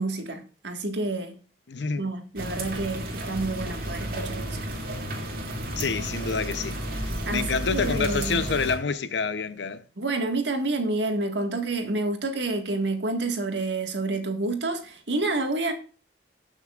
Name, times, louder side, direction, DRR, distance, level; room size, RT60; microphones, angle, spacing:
voice 1, 0.0-1.3 2.0-4.7 7.2-8.4 10.0-15.7, right 2 dB, 80° right, 1.8 m, -29 dB
voice 2, 1.7-2.0 5.8-9.8, left 5 dB, 80° left, 0.8 m, -28 dB
sound 1, 2.4-8.8, right 1 dB, 55° right, 2.7 m, -32 dB
18.5 x 6.4 x 2.5 m
head